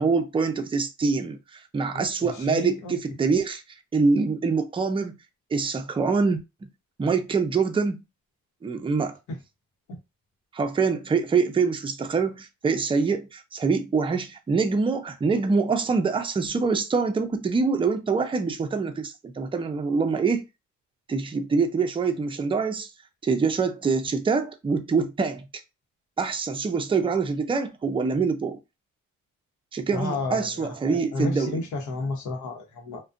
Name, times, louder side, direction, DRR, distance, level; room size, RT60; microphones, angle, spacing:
voice 1, 0.0-3.6 3.9-5.1 5.5-6.7 7.0-8.0 8.6-9.1 10.5-20.5 21.1-22.9 23.2-25.4 26.2-28.6 29.7-31.6, right 4 dB, 15° right, 0.4 m, -25 dB
voice 2, 1.9-2.9 29.9-33.0, left 3 dB, 75° left, 0.9 m, -32 dB
2.4 x 2.2 x 2.4 m
cardioid pair, 90°, 30 cm